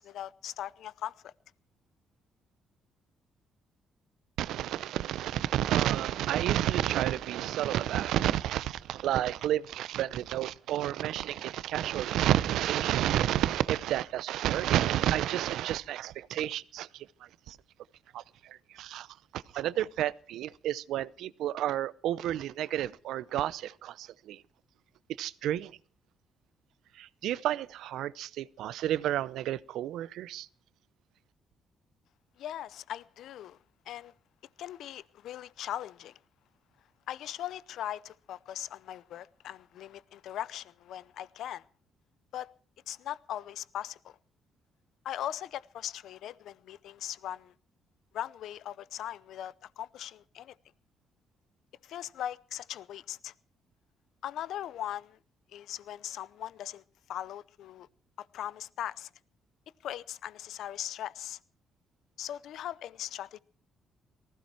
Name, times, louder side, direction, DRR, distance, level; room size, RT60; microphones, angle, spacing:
voice 1, 0.0-1.3 32.4-33.6 33.9-34.1 34.6-36.2 37.1-41.6 42.3-42.5 42.9-44.2 45.0-47.5 48.1-50.5 51.8-53.3 54.2-55.2 55.5-56.8 57.1-57.9 58.2-59.1 59.8-61.4 62.2-63.4, left 11 dB, 80° left, 0.7 m, -39 dB
voice 2, 4.4-17.1 17.5-17.6 18.1-18.2 18.5-19.1 19.3-24.4 25.2-25.7 27.0-30.5, right 12 dB, 85° right, 0.7 m, -30 dB
19.0 x 15.5 x 4.5 m
cardioid pair, 90°, 0 cm